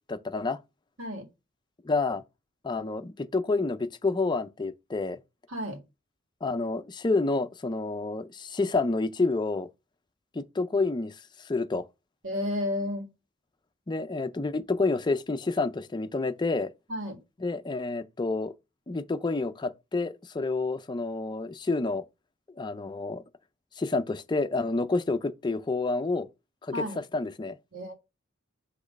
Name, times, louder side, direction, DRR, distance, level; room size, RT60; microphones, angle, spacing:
voice 1, 0.1-0.6 1.8-2.2 2.6-5.2 6.4-9.7 10.3-11.2 11.4-11.9 13.9-16.7 17.4-18.5 18.9-22.0 22.6-23.2 23.8-26.3 26.6-26.8 27.1-27.6, left 3 dB, 20° left, 0.5 m, -29 dB
voice 2, 5.5-5.8 12.2-13.0 16.9-17.2 26.7-27.0 27.7-27.9, left 1 dB, 85° right, 1.9 m, -32 dB
6.2 x 3.0 x 5.1 m
head